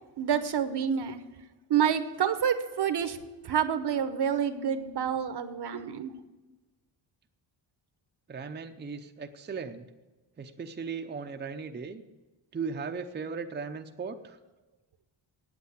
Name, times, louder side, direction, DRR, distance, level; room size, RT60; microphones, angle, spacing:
voice 1, 0.2-1.2 1.7-3.2 3.4-6.1, right 8 dB, 60° right, 10 dB, 1.0 m, -28 dB
voice 2, 8.3-9.9 10.4-12.0 12.5-14.4, right 5 dB, 25° right, 5 dB, 0.6 m, -37 dB
9.1 x 8.3 x 8.0 m, 1.1 s
wide cardioid pair, 135°, 45 cm